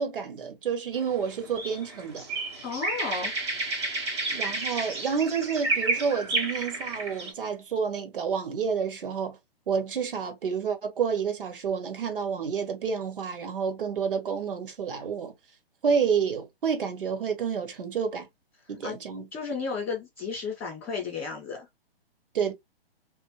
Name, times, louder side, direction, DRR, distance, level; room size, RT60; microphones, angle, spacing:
voice 1, 0.0-2.3 4.3-9.4 9.7-15.3 15.8-18.3 18.7-19.3 22.3-22.5, right 6 dB, 60° right, 0.9 m, -29 dB
sound 1, 1.0-7.3, right 3 dB, 25° right, 0.7 m, -31 dB
voice 2, 2.6-3.3 18.8-19.0 19.3-21.7, left 5 dB, ahead, 0.4 m, -33 dB
2.8 x 2.1 x 2.9 m
hypercardioid pair, 170°, 31 cm